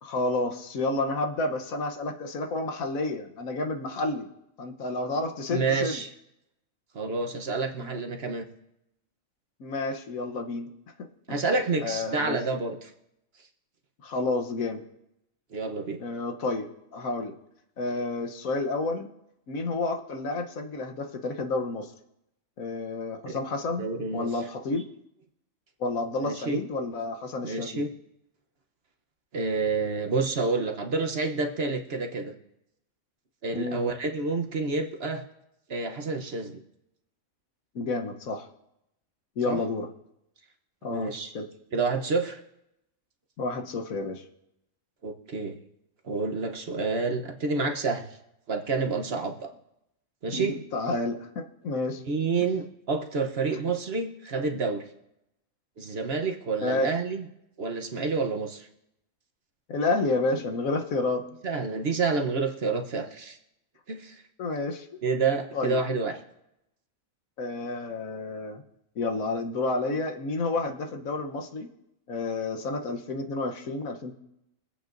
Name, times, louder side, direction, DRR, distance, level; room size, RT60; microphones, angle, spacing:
voice 1, 0.0-4.3 4.6-6.0 7.8-8.0 9.6-10.7 11.3-11.4 11.8-12.4 14.0-14.8 16.0-17.3 17.8-19.1 19.5-21.9 22.6-24.9 25.8-27.8 33.5-33.8 37.7-38.5 39.4-39.9 40.8-41.5 43.4-44.2 50.3-52.0 56.6-56.9 59.7-61.2 64.4-65.0 65.5-65.8 67.4-68.6 69.0-71.7 72.1-74.1, left 2 dB, 75° left, 4 dB, 1.4 m, -30 dB
voice 2, 5.5-6.1 6.9-8.5 11.3-12.9 15.5-16.0 23.2-23.4 23.8-24.3 26.2-26.6 27.4-27.9 29.3-32.3 33.4-35.2 35.7-36.6 39.5-39.6 40.9-41.3 41.7-42.4 45.0-45.6 46.0-48.1 48.5-49.5 50.2-50.6 52.0-54.8 55.8-57.3 57.6-58.7 61.4-63.4 63.9-64.2 65.0-66.2, right 4 dB, 50° right, 3 dB, 1.1 m, -28 dB
24.0 x 8.3 x 2.6 m, 0.84 s
omnidirectional pair, 1.5 m